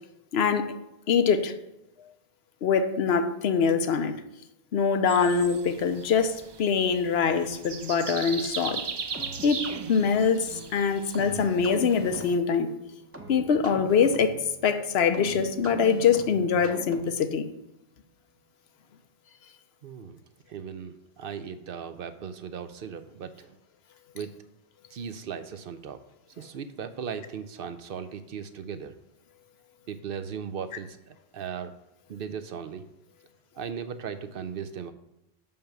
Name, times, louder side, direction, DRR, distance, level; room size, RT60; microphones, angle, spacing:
voice 1, 0.3-0.7 1.1-1.5 2.6-4.1 4.7-8.8 9.4-12.7 13.3-14.4 14.6-17.4, left 6 dB, 85° left, 10 dB, 1.0 m, -24 dB
sound 1, 5.1-12.3, right 5 dB, 45° right, 0.3 m, -39 dB
sound 2, 9.1-17.3, right 2 dB, 15° right, 0.7 m, -42 dB
voice 2, 19.8-20.2 20.5-23.6 24.1-24.4 24.9-26.0 26.4-29.0 29.9-31.7 32.1-32.8 33.6-34.9, right 7 dB, 65° right, 11 dB, 0.8 m, -37 dB
5.9 x 5.6 x 6.6 m, 0.87 s
omnidirectional pair, 1.0 m